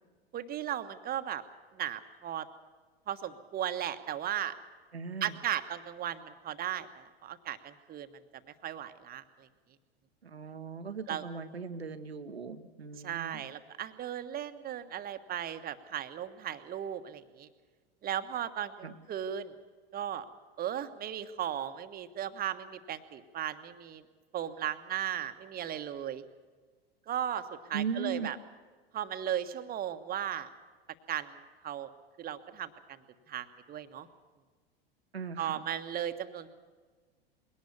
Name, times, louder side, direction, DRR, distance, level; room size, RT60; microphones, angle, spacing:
voice 1, 0.3-1.4 1.7-2.4 3.1-4.5 5.2-8.1 8.6-9.2 11.1-11.2 13.0-17.5 18.0-19.5 19.9-20.2 20.6-24.0 24.3-26.2 27.1-28.4 28.9-30.5 31.1-31.4 31.6-31.9 32.2-32.7 33.3-34.1 35.4-36.5, right 10 dB, 30° right, 10 dB, 1.3 m, -36 dB
voice 2, 4.9-5.3 10.2-13.4 18.8-18.9 27.7-28.3 35.1-35.6, right 5 dB, 85° right, 9 dB, 1.3 m, -38 dB
22.0 x 18.0 x 7.2 m, 1.4 s
figure-of-eight pair, 85°, 31 cm